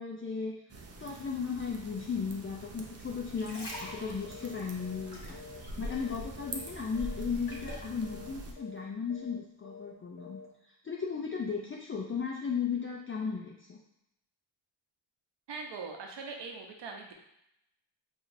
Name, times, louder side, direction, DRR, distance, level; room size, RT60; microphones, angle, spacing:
voice 1, 0.0-5.4 5.8-13.8, left 6 dB, 30° left, -2 dB, 0.5 m, -36 dB
sound 1, 0.7-8.5, right 1 dB, 35° right, 0.6 m, -44 dB
sound 2, 3.1-6.2 6.5-7.9 8.5-8.7, left 1 dB, 55° left, 1.5 m, -46 dB
sound 3, 3.7-4.0 4.3-4.5 4.8-6.2 6.4-6.7 6.9-7.2 7.5-7.8 8.0-8.3 8.6-8.8 9.1-9.4 9.6-9.9 10.2-10.5, left 5 dB, 80° left, 1.1 m, -48 dB
voice 2, 15.5-17.1, right 4 dB, 65° right, 2 dB, 0.8 m, -41 dB
4.8 x 2.7 x 2.6 m, 0.81 s
cardioid pair, 60°, 46 cm